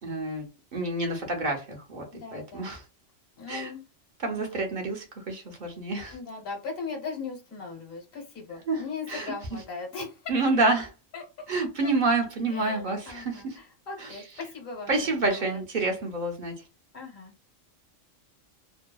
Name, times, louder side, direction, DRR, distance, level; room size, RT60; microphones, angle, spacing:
voice 1, 0.0-2.0 2.3-2.8 3.5-3.7 4.2-6.1 8.7-9.6 10.3-10.9 11.5-13.6 14.0-14.2 14.9-16.6, right 2 dB, 50° right, 0.7 m, -28 dB
voice 2, 2.1-2.8 3.4-3.8 4.4-4.9 6.1-10.3 11.1-11.5 11.8-11.9 12.5-15.0 15.3-15.6 16.9-17.5, left 4 dB, 50° left, 1.1 m, -39 dB
2.7 x 2.2 x 2.2 m
omnidirectional pair, 1.3 m